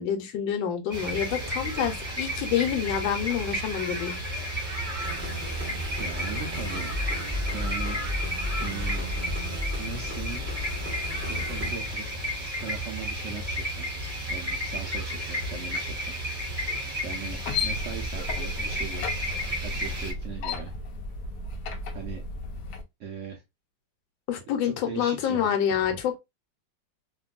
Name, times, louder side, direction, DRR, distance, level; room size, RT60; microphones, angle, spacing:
voice 1, 0.0-4.2 24.3-26.2, left 9 dB, 85° left, 1.4 m, -27 dB
sound 1, 0.9-20.1, equal, 20° right, 1.1 m, -32 dB
sound 2, 5.0-11.7, left 1 dB, 10° left, 0.7 m, -34 dB
voice 2, 6.0-6.9 7.5-8.0 8.6-9.0 9.8-10.6 11.1-12.1 12.6-14.0 14.3-16.1 16.5-16.8 17.0-17.4 17.6-19.1 19.6-20.7 21.9-22.2 23.0-23.4 24.6-25.5, right 6 dB, 80° right, 0.6 m, -39 dB
sound 3, 17.3-22.8, left 3 dB, 70° left, 0.9 m, -34 dB
2.9 x 2.6 x 2.3 m
omnidirectional pair, 2.0 m